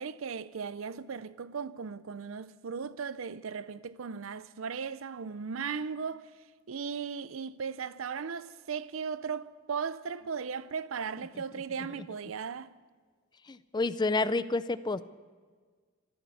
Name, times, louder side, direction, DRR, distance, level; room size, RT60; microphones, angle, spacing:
voice 1, 0.0-6.3 6.7-12.7, right 6 dB, 80° right, 0.5 m, -37 dB
voice 2, 13.5-15.1, left 3 dB, 20° left, 0.4 m, -29 dB
13.5 x 13.0 x 7.0 m
head